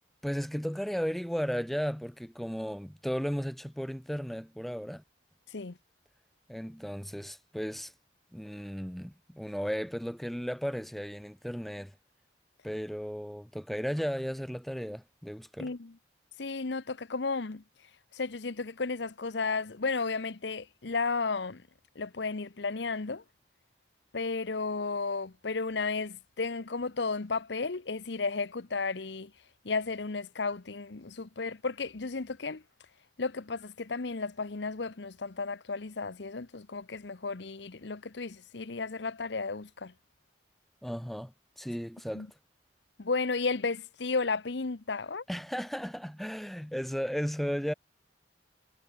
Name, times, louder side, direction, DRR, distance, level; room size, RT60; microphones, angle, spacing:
voice 1, 0.2-5.0 6.5-7.9 8.3-11.9 12.6-15.7 40.8-42.3 45.3-47.7, equal, ahead, 0.4 m, -35 dB
voice 2, 15.6-15.9 16.4-17.6 18.1-21.6 22.0-23.2 24.1-29.3 29.6-32.6 33.2-39.9 42.1-42.3 43.0-45.2, left 4 dB, 70° left, 0.9 m, -33 dB
head